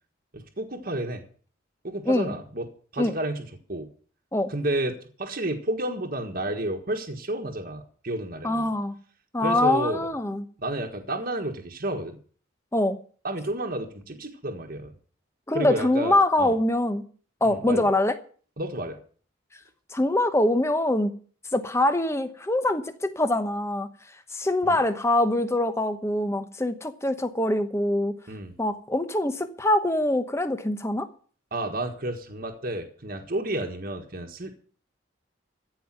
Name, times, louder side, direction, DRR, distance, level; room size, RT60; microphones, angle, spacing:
voice 1, 0.3-1.2 1.8-2.7 2.9-3.9 4.5-8.7 9.4-10.1 10.6-12.2 13.2-14.9 15.5-16.5 17.4-17.9 18.6-19.0 24.6-24.8 28.3-28.5 31.5-34.5, right 1 dB, 45° right, 1.5 m, -31 dB
voice 2, 8.4-8.9 9.3-10.4 12.7-13.0 15.5-17.0 17.4-18.2 19.9-21.1 21.5-23.9 24.3-28.1 28.6-31.1, left 1 dB, 15° left, 1.0 m, -24 dB
14.5 x 5.6 x 9.1 m
head